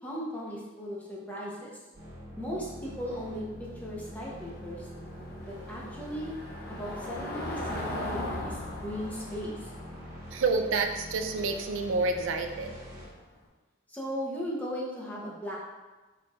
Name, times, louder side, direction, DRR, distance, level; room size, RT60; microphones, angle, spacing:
voice 1, 0.0-1.8 2.4-4.9 5.4-6.4 6.7-9.7 13.9-15.6, equal, 10° left, -5 dB, 0.7 m, -37 dB
sound 1, 1.9-13.0, equal, 45° right, 1.0 m, -45 dB
Car passing by / Engine, 2.7-13.3, left 1 dB, 50° left, 0.7 m, -40 dB
voice 2, 10.3-12.8, right 3 dB, 80° right, 5 dB, 0.4 m, -28 dB
4.4 x 3.8 x 2.4 m, 1.2 s
head